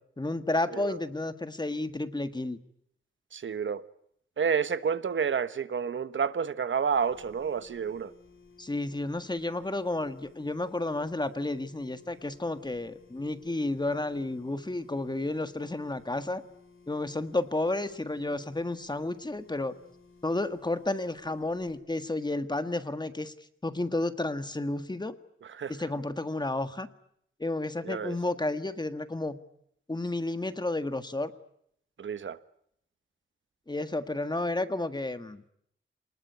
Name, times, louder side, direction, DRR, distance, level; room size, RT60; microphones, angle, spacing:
voice 1, 0.2-2.6 8.6-16.4 16.9-19.7 20.2-23.3 23.6-25.1 25.7-26.9 27.4-29.4 29.9-31.3 33.7-35.4, left 2 dB, 20° left, 1.7 m, -31 dB
voice 2, 3.3-3.8 4.4-8.1 25.5-25.7 27.8-28.2 32.0-32.4, right 6 dB, 75° right, 1.2 m, -30 dB
sound 1, 6.9-21.8, left 4 dB, 85° left, 6.5 m, -57 dB
27.0 x 20.0 x 9.6 m
wide cardioid pair, 80°, 20 cm